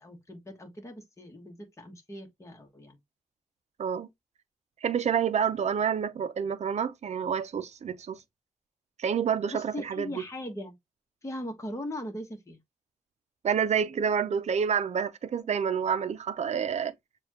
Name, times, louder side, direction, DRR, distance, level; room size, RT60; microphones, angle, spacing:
voice 1, 0.0-3.0 9.5-10.7 11.2-12.6, left 1 dB, 20° left, 1.2 m, -39 dB
voice 2, 4.8-8.2 9.0-10.1 13.4-16.9, right 7 dB, 60° right, 0.6 m, -28 dB
6.9 x 2.4 x 2.8 m
cardioid pair, 90°, 13 cm